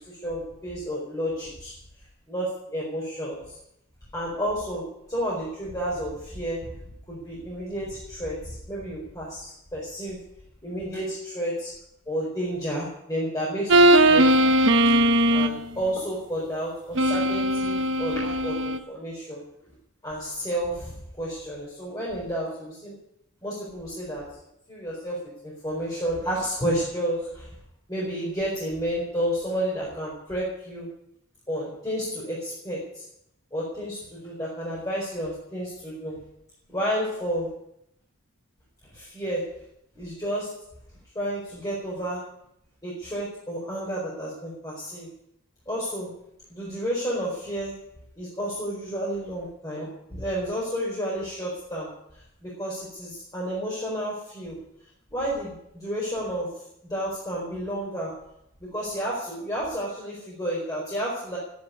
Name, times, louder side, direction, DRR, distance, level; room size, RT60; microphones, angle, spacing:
voice 1, 0.1-1.7 2.3-3.6 4.1-4.8 5.1-6.7 7.1-10.2 10.6-11.7 12.1-14.5 14.8-14.9 15.3-19.4 20.0-22.9 23.4-24.2 24.7-25.2 25.4-27.5 27.9-30.9 31.5-33.0 33.5-36.2 36.7-37.5 38.9-39.4 40.0-40.5 41.1-42.2 42.8-45.1 45.7-46.1 46.5-47.7 48.2-51.9 52.4-54.6 55.1-56.5 56.9-58.1 58.7-61.4, equal, 15° left, -6 dB, 4.5 m, -31 dB
sound 1, 13.7-15.6 17.0-18.8, right 1 dB, 55° right, 1.1 m, -19 dB
14.5 x 10.5 x 9.6 m, 0.78 s
head